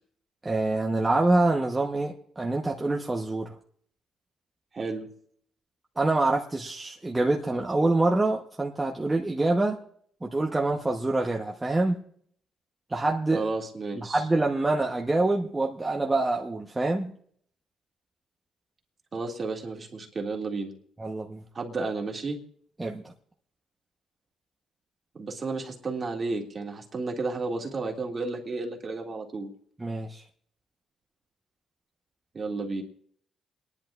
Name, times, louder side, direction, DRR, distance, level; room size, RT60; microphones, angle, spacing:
voice 1, 0.4-3.5 6.0-9.8 10.2-12.0 12.9-13.5 14.0-17.1 21.0-21.4 22.8-23.1 29.8-30.2, right 2 dB, 15° right, 0 dB, 1.0 m, -26 dB
voice 2, 4.7-5.1 13.3-14.2 19.1-20.7 21.5-22.4 25.1-29.5 32.3-32.8, right 3 dB, 40° right, 1 dB, 2.2 m, -32 dB
29.0 x 10.5 x 2.5 m, 0.62 s
cardioid pair, 90°, 0 cm